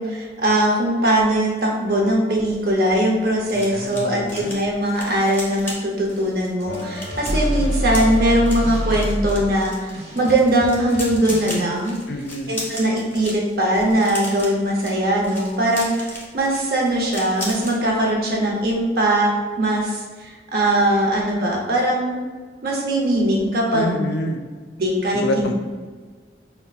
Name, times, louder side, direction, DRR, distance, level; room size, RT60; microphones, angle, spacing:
voice 1, 0.0-12.0 12.5-19.3 19.6-22.2 22.6-24.0 24.8-25.5, right 1 dB, 55° right, -2 dB, 0.7 m, -20 dB
sound 1, 2.6-17.8 18.1-18.4 18.6-18.9, left 1 dB, 10° left, 0.8 m, -36 dB
voice 2, 3.5-4.5 12.1-12.5 23.7-24.4 25.1-25.5, left 1 dB, 70° left, 5 dB, 0.4 m, -27 dB
sound 2, 6.7-11.7, equal, 40° right, 1.2 m, -26 dB
5.3 x 2.1 x 2.4 m, 1.5 s
head